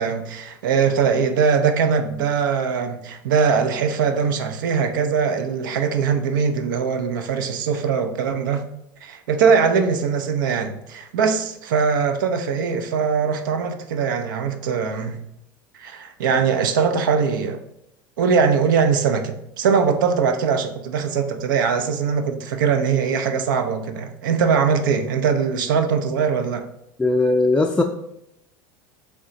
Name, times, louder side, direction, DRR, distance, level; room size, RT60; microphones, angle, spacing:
voice 1, 0.0-8.6 9.0-15.2 15.8-17.6 18.2-26.7, right 6 dB, 75° right, 0.5 m, -21 dB
voice 2, 27.0-27.8, left 2 dB, 10° left, 0.3 m, -18 dB
3.7 x 3.4 x 3.8 m
hypercardioid pair, 85°, 11 cm